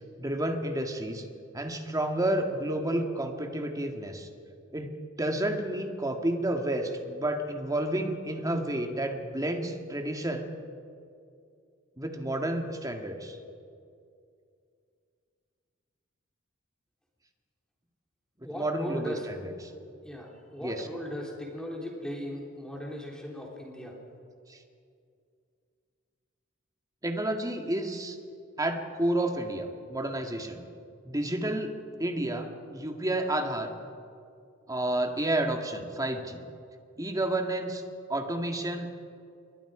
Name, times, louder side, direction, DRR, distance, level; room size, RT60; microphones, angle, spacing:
voice 1, 0.2-1.2 1.5-4.3 4.7-4.9 5.2-10.5 12.0-13.4 18.5-19.5 20.6-20.9 24.5-24.6 27.0-28.2 28.6-30.6 31.1-31.7 32.0-33.7 34.7-36.4 37.0-37.8 38.1-38.9, right 1 dB, 15° right, 4 dB, 2.0 m, -30 dB
voice 2, 18.4-19.3 20.0-23.9, equal, 5° left, -2 dB, 3.3 m, -38 dB
28.5 x 23.0 x 5.0 m, 2.4 s
head